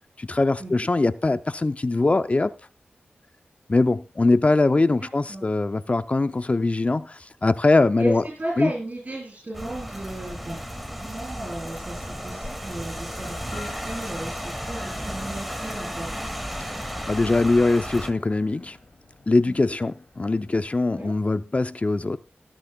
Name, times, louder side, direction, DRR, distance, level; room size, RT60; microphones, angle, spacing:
voice 1, 0.2-2.5 3.7-8.2 8.6-8.7 17.1-18.8 19.3-22.2, left 2 dB, 35° left, 0.6 m, -22 dB
voice 2, 5.0-5.5 8.0-10.6 11.0-16.1 19.5-19.8 20.9-21.1, right 1 dB, 40° right, 7.7 m, -35 dB
Rain, 9.5-18.1, equal, ahead, 2.2 m, -34 dB
sound 1, 13.2-20.8, left 3 dB, 50° left, 2.7 m, -48 dB
19.5 x 10.0 x 2.3 m
cardioid pair, 50°, 4 cm